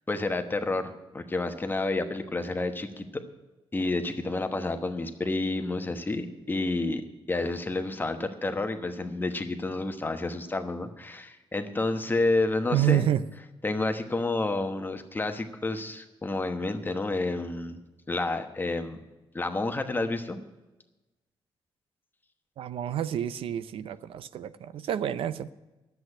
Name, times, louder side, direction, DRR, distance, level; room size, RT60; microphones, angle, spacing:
voice 1, 0.1-3.1 3.7-7.0 7.3-13.1 13.6-17.8 18.1-19.0 19.3-20.4, left 2 dB, 20° left, 7 dB, 1.1 m, -30 dB
voice 2, 12.7-13.2 22.6-25.5, right 11 dB, 80° right, 15 dB, 0.5 m, -28 dB
10.5 x 8.1 x 9.9 m, 1.1 s
cardioid pair, 110°, 9 cm